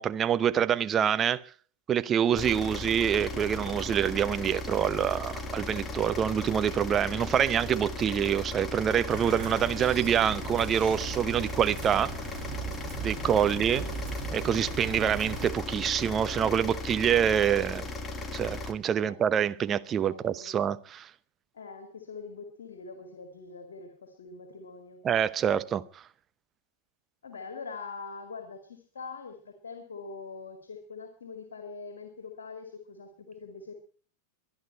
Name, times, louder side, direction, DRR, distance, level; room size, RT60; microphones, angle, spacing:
voice 1, 0.0-1.4 1.9-12.1 13.0-13.8 14.3-17.9 18.3-21.1 25.0-25.8, right 8 dB, 25° right, 0.8 m, -26 dB
sound 1, 2.4-18.7, left 2 dB, 20° left, 1.7 m, -37 dB
sound 2, 9.1-15.5, right 8 dB, 45° right, 4.9 m, -40 dB
voice 2, 13.4-14.0 19.0-19.2 20.0-20.5 21.5-25.0 27.2-33.7, left 4 dB, 65° left, 2.1 m, -43 dB
23.5 x 10.5 x 4.4 m
figure-of-eight pair, 90°, 0 cm